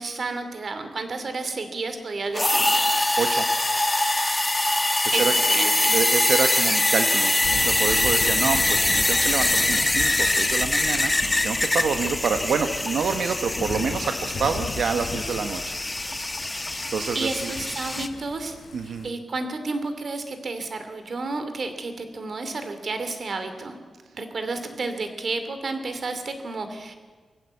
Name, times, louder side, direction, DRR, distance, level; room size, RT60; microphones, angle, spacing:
voice 1, 0.0-2.8 5.1-5.9 17.1-18.5 18.8-23.8 24.1-27.0, right 3 dB, 50° right, 8 dB, 2.7 m, -31 dB
sound 1, 2.3-18.1, left 1 dB, 15° left, 1.1 m, -23 dB
voice 2, 5.9-15.6 16.9-17.5 18.7-19.1, right 5 dB, 85° right, 7 dB, 1.1 m, -27 dB
Thunder / Rain, 7.4-19.1, left 5 dB, 55° left, 0.9 m, -37 dB
24.5 x 15.5 x 8.3 m, 1.5 s
wide cardioid pair, 145°, 0 cm